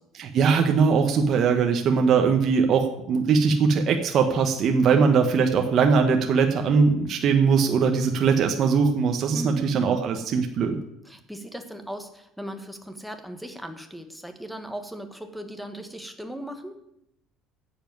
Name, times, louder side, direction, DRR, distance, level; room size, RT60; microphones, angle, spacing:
voice 1, 0.1-10.8, right 5 dB, 40° right, 4 dB, 1.0 m, -21 dB
voice 2, 4.8-5.2 9.3-9.6 11.0-16.8, equal, ahead, 6 dB, 1.1 m, -38 dB
10.5 x 7.2 x 9.2 m, 0.81 s
cardioid pair, 170°, 0 cm